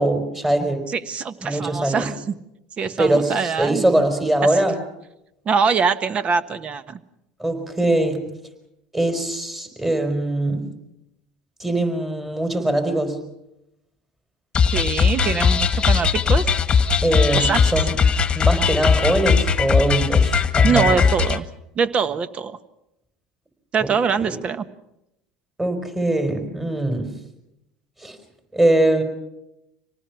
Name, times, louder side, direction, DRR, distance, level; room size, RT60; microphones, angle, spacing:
voice 1, 0.0-0.9 1.4-2.1 3.0-4.8 7.4-8.2 8.9-10.6 11.6-13.2 17.0-18.0 18.3-21.0 23.8-23.9 24.2-24.4 25.6-27.1 28.0-28.2 28.5-29.0, right 1 dB, 10° right, 6 dB, 4.3 m, -22 dB
voice 2, 0.9-2.4 2.8-3.8 5.4-7.0 14.7-16.5 17.3-17.6 20.6-21.4 21.7-22.6 23.7-24.7, right 6 dB, 35° right, 13 dB, 1.2 m, -23 dB
sound 1, 14.5-21.4, left 6 dB, 30° left, 1.5 m, -19 dB
25.5 x 19.0 x 5.9 m, 0.86 s
supercardioid pair, 100°, 3 cm